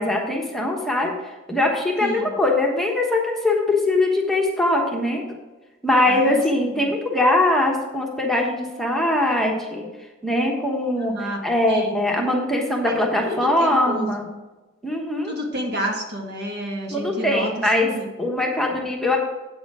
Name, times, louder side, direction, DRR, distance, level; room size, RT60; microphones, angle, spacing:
voice 1, 0.0-5.2 5.8-9.9 10.2-14.3 14.8-15.3 16.9-17.9 18.2-19.2, left 1 dB, ahead, -1 dB, 1.1 m, -21 dB
voice 2, 2.0-2.4 6.1-6.9 11.0-11.4 11.7-12.2 12.9-13.0 13.3-14.1 15.2-17.5 17.8-18.1 18.7-18.8, equal, 55° right, 1 dB, 1.7 m, -30 dB
8.5 x 7.1 x 4.9 m, 1.2 s
head